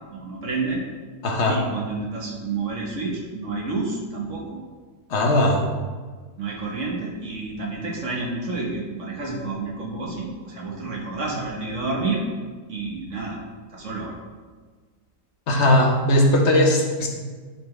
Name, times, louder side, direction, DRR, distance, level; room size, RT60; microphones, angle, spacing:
voice 1, 0.1-0.8 1.5-4.6 6.4-12.2 12.7-13.4 13.7-14.2, right 3 dB, 50° right, -1 dB, 1.4 m, -29 dB
voice 2, 1.2-1.6 5.1-5.7 15.5-17.1, left 1 dB, 45° left, 1 dB, 1.1 m, -18 dB
10.5 x 4.2 x 3.2 m, 1.4 s
omnidirectional pair, 1.8 m